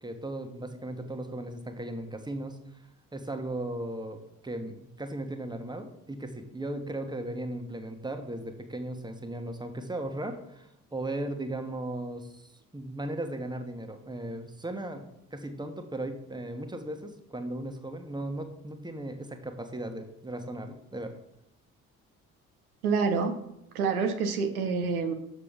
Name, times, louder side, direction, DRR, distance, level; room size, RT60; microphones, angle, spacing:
voice 1, 0.0-2.6 3.1-4.2 4.4-21.1, right 1 dB, 10° right, 6 dB, 1.3 m, -37 dB
voice 2, 22.8-23.4 23.7-25.1, right 5 dB, 80° right, 6 dB, 0.8 m, -27 dB
7.4 x 6.7 x 5.1 m, 0.82 s
figure-of-eight pair, 45°, 43 cm